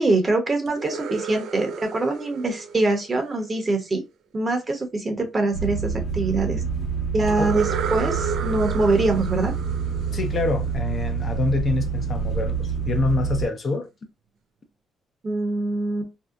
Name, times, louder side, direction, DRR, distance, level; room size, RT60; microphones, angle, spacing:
voice 1, 0.0-4.0 4.3-6.6 7.1-9.5 15.2-16.1, right 2 dB, 30° right, 0.8 m, -24 dB
sound 1, 0.7-3.6 7.3-11.0, right 7 dB, 75° right, 0.3 m, -33 dB
sound 2, 5.5-13.5, right 6 dB, 65° left, 0.9 m, -27 dB
voice 2, 10.1-13.9, left 3 dB, 45° left, 0.6 m, -26 dB
2.7 x 2.1 x 2.3 m
cardioid pair, 90°, 0 cm